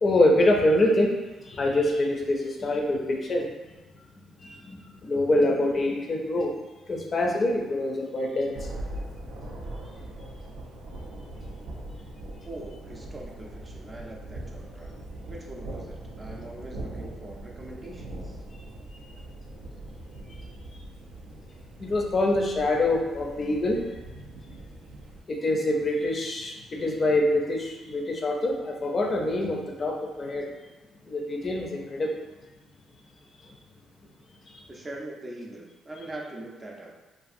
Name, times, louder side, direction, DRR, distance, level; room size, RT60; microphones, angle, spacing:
voice 1, 0.0-3.8 4.4-6.6 6.9-8.7 18.9-19.1 20.3-20.4 21.8-24.0 25.3-30.5 31.1-32.2 33.5-33.6 34.5-34.6, left 1 dB, 40° left, 0 dB, 0.4 m, -25 dB
Thunder, 8.5-25.2, right 1 dB, 85° right, 0.4 m, -41 dB
voice 2, 12.5-15.0 15.3-18.4 25.0-25.1 34.7-36.9, right 1 dB, 25° right, -1 dB, 0.4 m, -42 dB
2.5 x 2.4 x 2.5 m, 1.1 s
cardioid pair, 90°, 0 cm